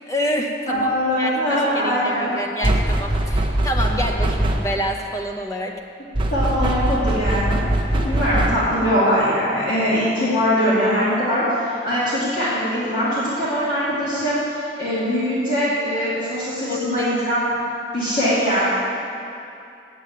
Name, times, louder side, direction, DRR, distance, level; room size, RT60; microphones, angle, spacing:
voice 1, 0.1-5.8 16.7-17.1, equal, 20° left, 1 dB, 0.8 m, -27 dB
voice 2, 0.7-2.3 6.3-17.4 17.9-18.6, equal, 45° left, -11 dB, 2.5 m, -22 dB
sound 1, 2.6-4.9 6.1-8.8, right 1 dB, 25° right, 0.8 m, -21 dB
8.1 x 7.5 x 8.7 m, 2.6 s
head